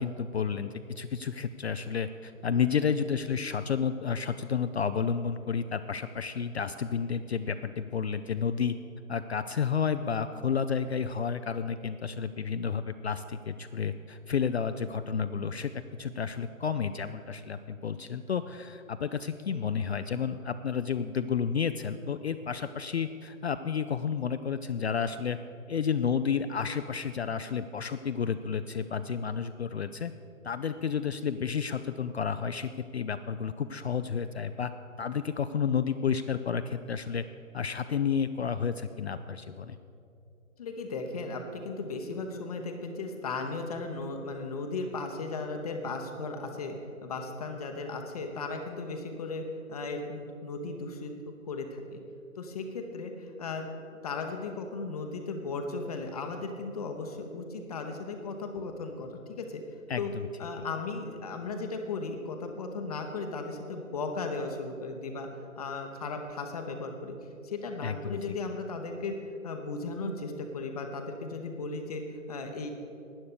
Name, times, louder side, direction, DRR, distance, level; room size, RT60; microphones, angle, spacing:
voice 1, 0.0-8.7 9.1-15.7 16.0-25.4 25.7-30.1 30.4-34.7 35.0-37.2 37.5-39.8 59.9-60.3 67.8-68.4, left 7 dB, 50° left, 10 dB, 0.5 m, -31 dB
voice 2, 40.6-46.8 47.0-52.0 52.4-53.7 54.0-59.6 60.0-60.1 60.4-65.3 65.6-67.2 67.4-69.1 69.4-72.7, left 3 dB, 25° left, 4 dB, 0.8 m, -36 dB
11.5 x 9.5 x 6.7 m, 2.7 s
figure-of-eight pair, 135°, 41 cm